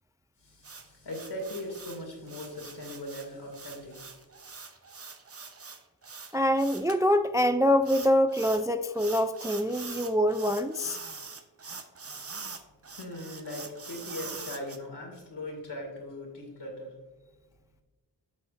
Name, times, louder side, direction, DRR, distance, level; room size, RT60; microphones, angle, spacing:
voice 1, 0.4-4.2 12.9-16.9, left 1 dB, 70° left, 0 dB, 2.4 m, -40 dB
sound 1, 0.6-7.0 7.8-8.7 8.9-14.8, right 4 dB, 35° right, 0.8 m, -43 dB
voice 2, 6.3-11.0, equal, 10° right, 9 dB, 0.3 m, -25 dB
9.5 x 6.3 x 2.5 m, 1.2 s
cardioid pair, 55°, 42 cm